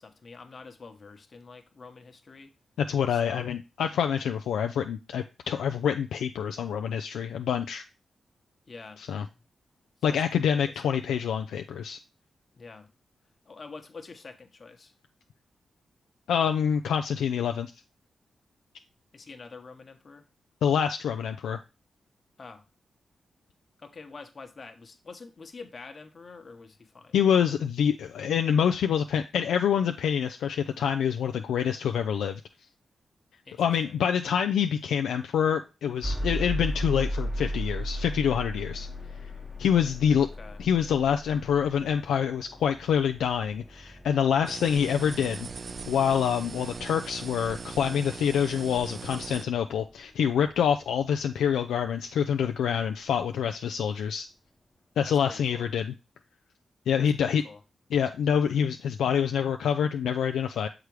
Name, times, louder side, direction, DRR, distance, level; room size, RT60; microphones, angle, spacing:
voice 1, 0.0-2.5 3.1-3.5 8.7-9.0 10.0-10.8 12.6-12.9 13.4-14.9 19.1-20.3 22.4-22.6 23.8-27.2 33.4-34.0 40.2-40.6 55.0-55.7 57.0-57.6, left 4 dB, 55° left, 7 dB, 1.0 m, -46 dB
voice 2, 2.8-7.8 9.0-9.3 10.0-12.0 16.3-17.7 20.6-21.6 27.1-32.4 33.6-38.9 39.6-40.3 40.6-45.5 45.9-54.3 55.0-55.9 56.9-57.4 57.9-60.7, left 8 dB, 80° left, 6 dB, 0.3 m, -26 dB
sound 1, 36.0-52.0, equal, 5° left, 0.8 m, -37 dB
sound 2, 44.5-49.5, right 5 dB, 55° right, 0.4 m, -40 dB
6.7 x 4.9 x 3.1 m, 0.29 s
supercardioid pair, 40°, 0 cm